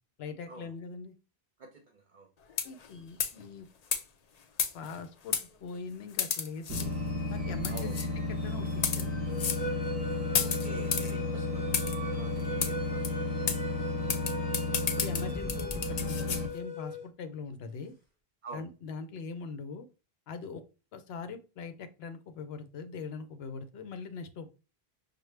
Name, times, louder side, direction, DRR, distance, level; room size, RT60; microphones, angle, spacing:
voice 1, 0.2-1.1 2.6-3.7 4.7-6.9 7.3-7.9 8.3-9.2 15.0-17.9 18.5-19.9 20.3-20.6 20.9-24.5, left 5 dB, 75° left, 9 dB, 0.8 m, -42 dB
voice 2, 1.6-2.3 7.7-8.0 10.4-14.4 18.4-18.6, right 4 dB, 55° right, 4 dB, 0.7 m, -48 dB
sound 1, 2.5-2.9 3.2-3.4 3.9-4.0 4.6-5.0 5.3-5.5 6.2-6.9 7.6-8.1 8.7-9.1 9.4-9.6 10.3-11.1 11.7-12.0 12.6-12.7 13.0-13.1 13.5-13.6 14.1-16.4, left 6 dB, 55° left, 0.5 m, -31 dB
sound 2, 6.7-16.5, left 2 dB, 15° right, 1.0 m, -33 dB
sound 3, 9.3-17.0, left 2 dB, 35° left, 1.5 m, -39 dB
5.9 x 2.1 x 3.2 m, 0.32 s
omnidirectional pair, 1.1 m